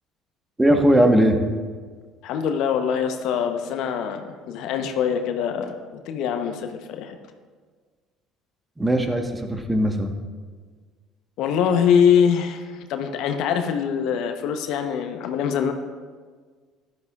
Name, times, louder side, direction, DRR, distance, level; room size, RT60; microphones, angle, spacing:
voice 1, 0.6-1.4 8.8-10.1, right 1 dB, 15° right, 5 dB, 1.3 m, -19 dB
voice 2, 2.2-7.2 11.4-15.7, left 7 dB, 65° left, 6 dB, 0.8 m, -23 dB
14.0 x 11.5 x 2.4 m, 1.5 s
hypercardioid pair, 60°, 0 cm